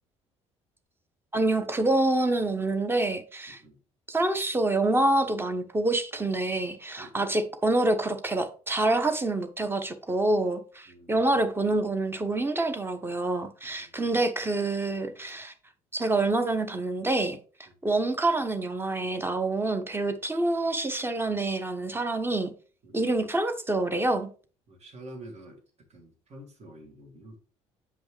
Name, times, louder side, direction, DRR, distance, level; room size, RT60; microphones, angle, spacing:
voice 1, 1.3-3.6 4.1-15.5 15.9-22.5 22.9-24.3, right 2 dB, 15° right, 1.1 m, -27 dB
voice 2, 3.5-3.8 7.0-7.3 10.9-11.4 13.6-13.9 22.8-23.1 24.7-27.4, right 1 dB, 40° right, 2.3 m, -48 dB
8.1 x 5.2 x 3.2 m
figure-of-eight pair, 55°, 16 cm